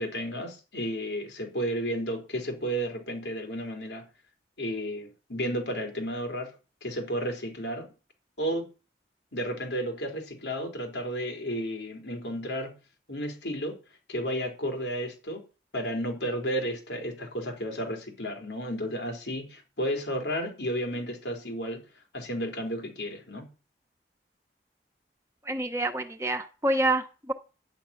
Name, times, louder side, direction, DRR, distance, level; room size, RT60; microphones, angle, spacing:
voice 1, 0.0-4.1 4.6-6.5 6.8-7.9 8.4-8.7 9.3-12.8 13.1-13.8 14.1-15.4 15.7-21.8 22.1-23.5, equal, 90° left, 3.6 m, -32 dB
voice 2, 25.4-27.3, right 1 dB, 15° right, 1.2 m, -27 dB
10.5 x 9.3 x 5.8 m
head